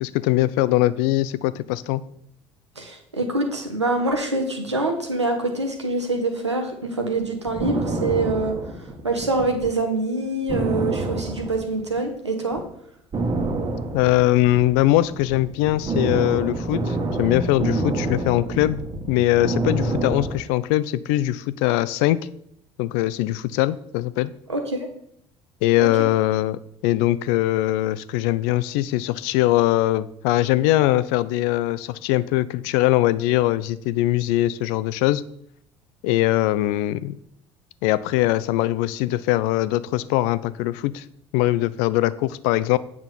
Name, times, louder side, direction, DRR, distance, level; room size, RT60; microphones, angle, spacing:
voice 1, 0.0-2.0 13.9-18.8 19.1-22.2 22.8-24.3 25.6-35.2 36.0-37.1 37.8-41.0 41.3-42.8, left 16 dB, 55° left, 17 dB, 0.5 m, -21 dB
voice 2, 2.8-8.5 9.0-12.6 24.5-24.8 25.8-25.9, right 2 dB, 85° right, 4 dB, 1.2 m, -25 dB
sound 1, 7.2-9.7 10.0-10.1 10.5-12.2 12.5-12.7 13.1-20.4, right 2 dB, 30° right, 1.4 m, -27 dB
8.5 x 6.0 x 5.3 m, 0.72 s
figure-of-eight pair, 60°, 14 cm